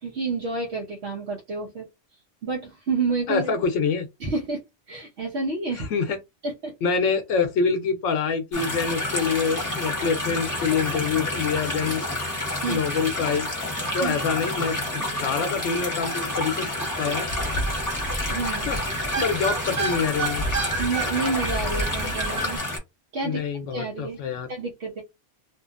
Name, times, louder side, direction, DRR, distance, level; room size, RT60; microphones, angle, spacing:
voice 1, 0.0-1.9 2.4-3.5 4.2-4.6 4.9-5.9 6.4-6.7 12.6-12.8 14.0-14.3 18.3-18.7 19.2-19.3 20.8-22.6 23.1-23.4 23.7-24.2 24.5-25.0, right 4 dB, 65° right, 1.0 m, -29 dB
voice 2, 3.3-4.1 5.8-6.2 6.8-12.1 12.7-13.5 13.9-14.8 15.2-16.7 17.0-17.3 18.6-18.8 19.2-20.4 23.2-24.5, left 5 dB, 85° left, 0.9 m, -26 dB
sound 1, 8.5-22.8, left 1 dB, 15° left, 1.0 m, -29 dB
sound 2, 13.9-14.0 14.3-14.4 14.6-22.6, right 3 dB, 40° right, 1.2 m, -31 dB
2.8 x 2.5 x 2.4 m
omnidirectional pair, 1.2 m